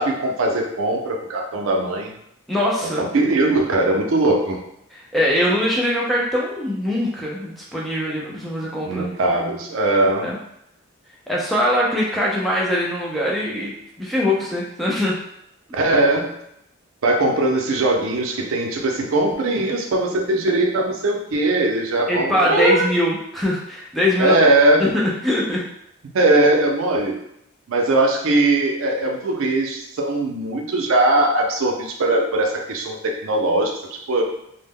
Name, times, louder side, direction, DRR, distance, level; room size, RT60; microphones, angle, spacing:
voice 1, 0.0-2.1 3.0-4.6 8.6-10.3 15.7-16.3 17.0-22.9 24.2-24.9 26.1-27.2 27.7-34.2, right 2 dB, 70° right, 1 dB, 0.4 m, -20 dB
voice 2, 2.5-3.0 5.1-9.2 10.2-10.4 11.3-15.2 22.1-24.4 24.8-25.7, left 1 dB, ahead, -5 dB, 0.3 m, -22 dB
2.1 x 2.0 x 3.5 m, 0.77 s
head